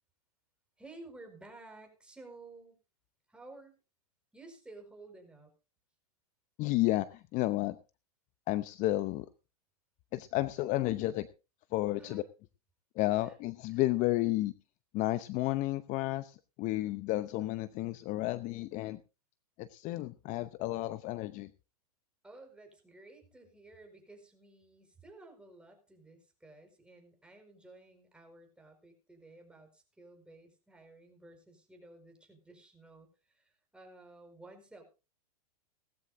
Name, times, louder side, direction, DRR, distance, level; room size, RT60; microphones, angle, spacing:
voice 1, 0.8-2.8 3.3-3.7 4.3-5.5 12.0-12.2 13.1-13.3 13.7-13.8 22.2-34.8, right 2 dB, 5° right, 2 dB, 4.8 m, -54 dB
voice 2, 6.6-7.8 8.5-9.3 10.1-11.3 11.7-12.2 12.9-14.5 14.9-19.0 19.6-21.5, left 17 dB, 40° left, 14 dB, 0.8 m, -32 dB
18.0 x 14.0 x 2.7 m, 0.31 s
hypercardioid pair, 115°, 20 cm